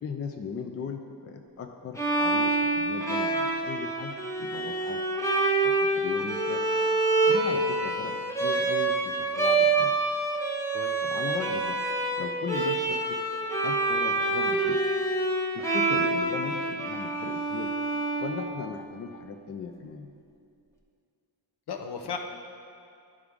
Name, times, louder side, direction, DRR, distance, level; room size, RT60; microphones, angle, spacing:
voice 1, 0.0-5.0 5.6-6.6 7.3-8.2 8.4-9.9 11.0-11.8 12.2-13.0 13.6-14.8 15.5-17.7 18.2-20.1, left 5 dB, 35° left, 5 dB, 0.4 m, -37 dB
Bowed string instrument, 2.0-18.9, right 2 dB, 5° left, 0.8 m, -27 dB
voice 2, 10.7-11.0 21.7-22.2, left 6 dB, 65° left, 4 dB, 0.8 m, -35 dB
11.0 x 4.9 x 3.5 m, 2.4 s
wide cardioid pair, 130°, 42 cm